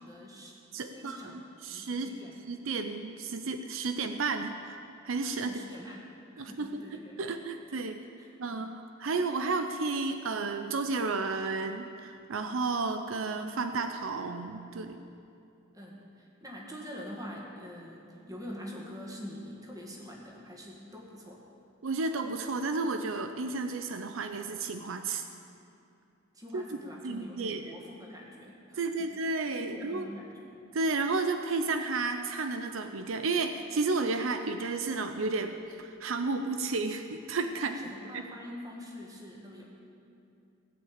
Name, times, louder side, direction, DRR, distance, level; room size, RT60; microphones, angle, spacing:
voice 1, 0.0-0.6 0.9-2.4 5.4-6.0 6.3-7.2 8.2-8.3 15.7-21.5 26.3-29.1 29.6-30.5 37.7-39.6, equal, 20° right, -2 dB, 2.1 m, -45 dB
voice 2, 0.7-2.1 2.5-4.8 5.0-5.6 6.4-6.8 7.2-8.0 8.4-15.0 21.8-25.2 26.5-26.6 27.0-27.8 28.8-30.1 30.7-37.9 38.1-38.2, right 3 dB, 75° right, 7 dB, 0.6 m, -32 dB
16.5 x 5.7 x 8.9 m, 2.6 s
head